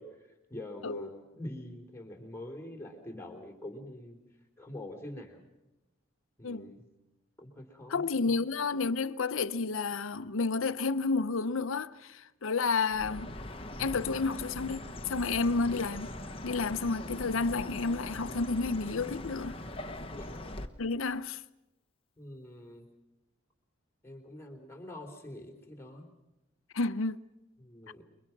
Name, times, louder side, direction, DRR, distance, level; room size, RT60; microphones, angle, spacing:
voice 1, 0.0-4.2 4.6-5.5 6.4-6.8 7.4-8.4 20.1-20.3 22.2-22.9 24.0-26.1 27.6-28.0, left 1 dB, 10° left, 3.7 m, -45 dB
voice 2, 7.9-13.3 13.8-16.1 16.4-19.6 20.8-21.4 26.7-27.2, left 4 dB, 85° left, 0.7 m, -31 dB
Chirp tweet, 12.9-20.7, left 1 dB, 25° left, 1.2 m, -41 dB
29.0 x 23.5 x 6.0 m
head